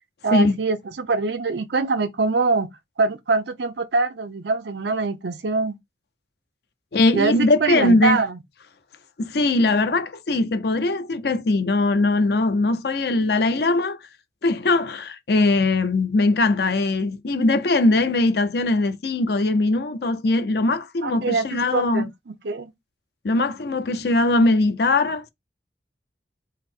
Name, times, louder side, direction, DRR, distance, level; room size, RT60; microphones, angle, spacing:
voice 1, 0.2-2.7 3.0-5.8 7.1-7.3 7.6-8.4 21.0-22.1 22.4-22.7, right 4 dB, 75° right, 0.6 m, -23 dB
voice 2, 6.9-8.2 9.2-14.0 14.4-22.0 23.2-25.3, left 2 dB, 60° left, 0.5 m, -20 dB
3.7 x 2.0 x 4.2 m
head